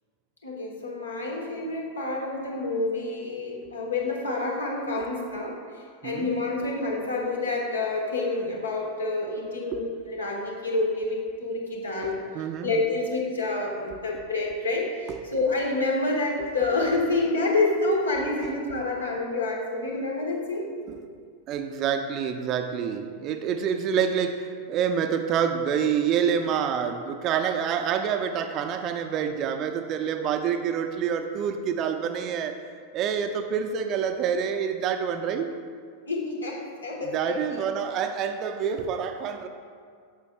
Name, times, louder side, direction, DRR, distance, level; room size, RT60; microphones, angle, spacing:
voice 1, 0.4-5.6 6.0-12.2 12.6-20.7 36.1-37.6, left 2 dB, 75° left, -1 dB, 1.1 m, -28 dB
voice 2, 12.0-12.7 18.4-18.5 20.9-21.1 21.5-32.6 32.9-35.5 37.0-39.5, right 7 dB, 35° right, 7 dB, 0.5 m, -27 dB
9.0 x 6.8 x 2.3 m, 2.1 s
figure-of-eight pair, 90°, 0 cm